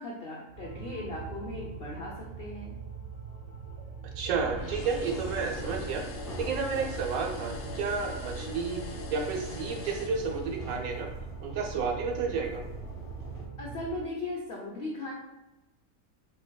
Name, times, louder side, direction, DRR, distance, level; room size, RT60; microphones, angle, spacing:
voice 1, 0.0-2.7 13.6-15.1, left 2 dB, 85° left, -2 dB, 0.5 m, -38 dB
sound 1, 0.5-14.1, right 6 dB, 40° right, 0.8 m, -42 dB
voice 2, 4.2-6.0 6.4-8.8 9.1-11.1 11.4-12.6, right 5 dB, 70° right, 1 dB, 1.1 m, -31 dB
sound 2, 4.3-13.5, left 1 dB, 20° left, 0.6 m, -44 dB
sound 3, 4.6-10.8, left 5 dB, 70° left, 0.8 m, -43 dB
4.5 x 2.5 x 2.2 m, 1.0 s
omnidirectional pair, 1.6 m